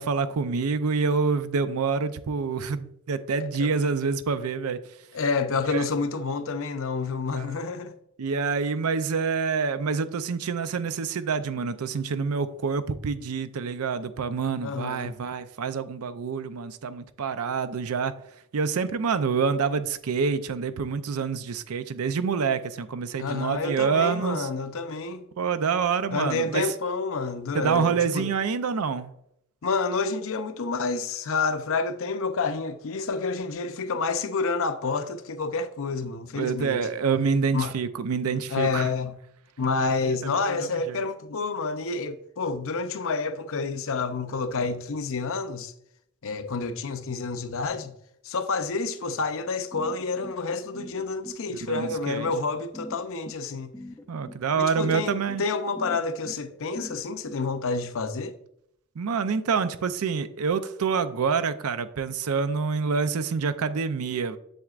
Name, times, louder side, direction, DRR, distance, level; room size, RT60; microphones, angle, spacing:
voice 1, 0.0-4.8 5.6-5.9 7.3-7.5 8.2-18.1 18.5-24.5 25.4-26.7 27.5-29.1 36.4-38.9 40.0-41.0 51.5-52.3 54.1-55.4 59.0-64.4, right 5 dB, 85° right, 0.5 m, -27 dB
voice 2, 5.1-8.0 14.6-15.2 23.2-25.3 26.1-28.3 29.6-36.9 37.5-37.7 38.5-39.2 39.6-45.7 46.2-47.9 48.2-53.7 54.6-58.3, left 4 dB, 65° left, 0.6 m, -29 dB
sound 1, 49.7-57.4, left 1 dB, 10° left, 0.4 m, -43 dB
7.7 x 7.2 x 2.4 m
head